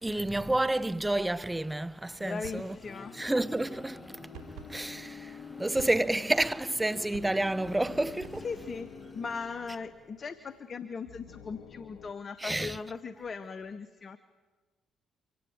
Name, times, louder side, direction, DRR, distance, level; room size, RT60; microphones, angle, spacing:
voice 1, 0.0-2.8 3.1-4.1 4.7-8.5 12.4-12.8, right 1 dB, 15° right, 0.8 m, -30 dB
voice 2, 2.2-3.2 8.4-8.9 9.1-14.2, left 5 dB, 45° left, 1.0 m, -39 dB
sound 1, 2.4-2.7 4.3-4.8 5.7-6.3 7.1-7.6 8.2-8.8, right 5 dB, 70° right, 2.9 m, -48 dB
sound 2, 2.5-10.0, left 4 dB, 30° left, 2.3 m, -48 dB
sound 3, 7.6-12.1, left 8 dB, 70° left, 0.8 m, -54 dB
24.5 x 17.0 x 8.8 m
hypercardioid pair, 50°, 0 cm